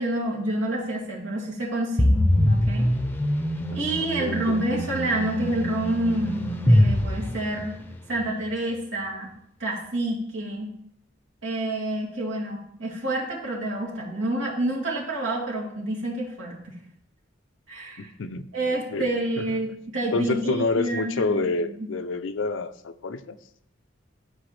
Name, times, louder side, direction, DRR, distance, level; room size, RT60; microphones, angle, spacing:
voice 1, 0.0-2.9 3.7-7.8 8.1-9.3 9.6-10.7 11.4-16.7 17.7-18.1 18.5-21.9, right 1 dB, 80° right, -3 dB, 2.6 m, -28 dB
sound 1, 2.0-8.0, equal, 10° left, 0.6 m, -23 dB
voice 2, 4.2-4.6 18.0-18.5 18.9-19.0 20.1-23.4, left 3 dB, 80° left, 11 dB, 0.5 m, -28 dB
12.0 x 5.2 x 3.3 m, 0.72 s
head